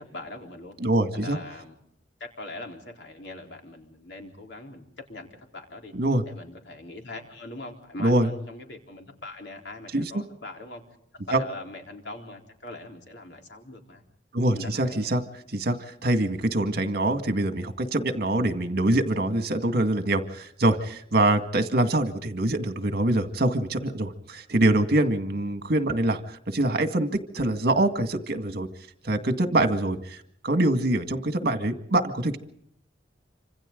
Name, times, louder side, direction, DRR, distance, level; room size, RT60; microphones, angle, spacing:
voice 1, 0.0-0.8 1.1-1.7 2.2-5.3 5.5-5.9 6.2-10.8 11.1-14.0 14.5-15.1, left 2 dB, 70° left, 2 dB, 4.0 m, -41 dB
voice 2, 0.8-1.4 5.9-6.2 8.0-8.3 9.9-10.2 11.3-11.4 14.3-15.2 15.5-28.7 29.0-32.4, right 1 dB, 60° right, 7 dB, 2.0 m, -24 dB
26.5 x 26.5 x 3.9 m, 0.71 s
head